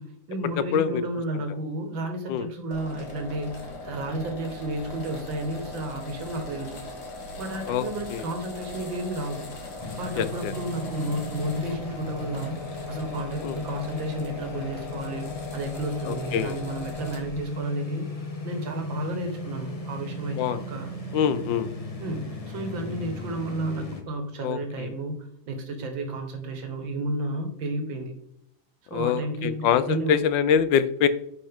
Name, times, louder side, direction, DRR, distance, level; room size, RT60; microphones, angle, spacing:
voice 1, 0.0-6.8 7.4-9.5 10.0-12.6 12.9-15.3 15.5-18.1 18.4-20.4 20.7-20.9 22.0-28.1 28.9-30.2, right 1 dB, 80° right, 5 dB, 2.1 m, -32 dB
sound 1, 2.7-17.4, left 2 dB, 60° left, 2.0 m, -39 dB
sound 2, 9.8-24.0, left 2 dB, 30° left, 0.6 m, -37 dB
voice 2, 10.2-10.5 13.4-13.6 16.1-16.6 20.4-20.6 21.1-21.7 24.4-24.9 28.9-31.1, left 8 dB, 75° left, 13 dB, 1.3 m, -24 dB
10.0 x 5.5 x 3.5 m, 0.73 s
omnidirectional pair, 2.1 m